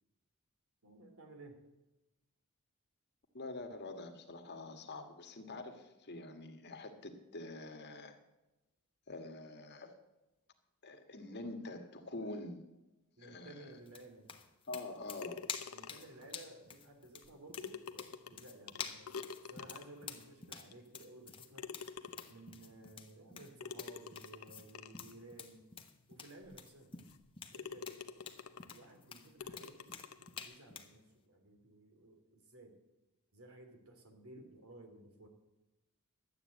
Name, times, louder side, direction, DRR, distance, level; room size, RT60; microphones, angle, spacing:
voice 1, 0.8-1.6 13.2-14.3 15.7-19.1 19.4-21.7 22.3-25.7 26.1-26.9 27.5-27.9 28.7-32.8 33.3-35.3, right 2 dB, 75° right, 4 dB, 2.9 m, -56 dB
voice 2, 3.3-8.1 9.1-9.9 10.8-12.6 13.2-13.8 14.7-15.4, left 2 dB, 50° left, 6 dB, 1.6 m, -46 dB
sound 1, 13.9-30.9, left 6 dB, 25° left, 1.1 m, -49 dB
sound 2, 15.2-16.2 17.2-17.3 17.6-20.1 20.7-20.8 21.6-22.5 23.6-25.1 25.8-25.9 26.4-26.5 27.1-27.2 27.5-28.8 29.4-30.5, left 6 dB, 75° left, 0.8 m, -47 dB
12.0 x 8.9 x 7.9 m, 1.0 s
head